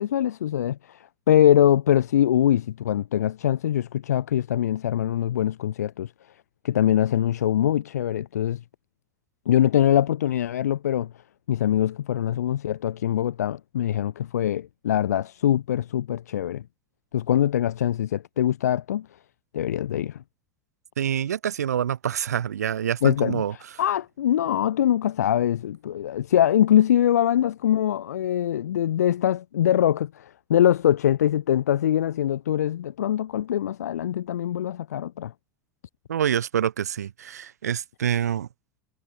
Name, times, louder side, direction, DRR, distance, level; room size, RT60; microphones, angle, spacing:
voice 1, 0.0-6.1 6.6-8.6 9.5-11.1 11.5-16.6 17.1-19.1 19.5-20.2 23.0-23.4 23.8-35.3, left 11 dB, 85° left, 0.8 m, -23 dB
voice 2, 21.0-23.5 36.1-38.5, right 9 dB, 85° right, 2.4 m, -26 dB
hypercardioid pair, 80°, 8 cm